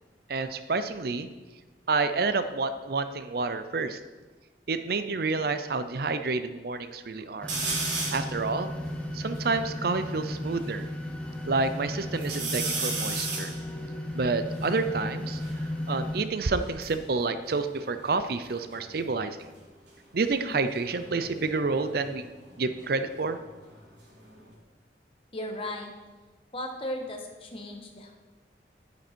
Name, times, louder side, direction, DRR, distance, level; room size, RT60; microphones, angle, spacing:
voice 1, 0.3-1.3 1.9-4.0 4.7-7.5 8.1-8.7 9.1-10.8 11.5-13.5 14.1-19.4 20.1-22.3 22.6-23.4, right 3 dB, 55° right, 11 dB, 0.6 m, -29 dB
sound 1, 7.4-16.2, left 1 dB, 5° left, 1.0 m, -35 dB
sound 2, 7.5-8.3 8.9-9.0 9.1-10.7 11.2-11.8 12.2-15.6 16.5-18.4 18.7-19.2 20.7-23.4 23.7-24.5, right 3 dB, 80° right, 3.3 m, -36 dB
voice 2, 25.3-25.9 26.5-28.2, left 1 dB, 30° left, 2 dB, 1.5 m, -36 dB
10.5 x 9.4 x 4.5 m, 1.2 s
head